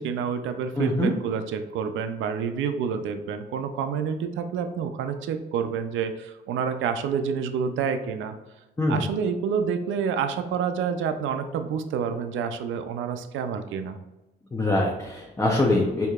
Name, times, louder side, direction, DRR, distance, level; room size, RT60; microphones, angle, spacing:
voice 1, 0.0-8.3 8.9-14.0, right 6 dB, 80° right, 8 dB, 0.4 m, -28 dB
voice 2, 0.8-1.1 8.8-9.0 14.5-16.1, left 1 dB, 15° left, -3 dB, 0.6 m, -23 dB
4.5 x 2.8 x 2.3 m, 1.0 s
cardioid pair, 90°, 20 cm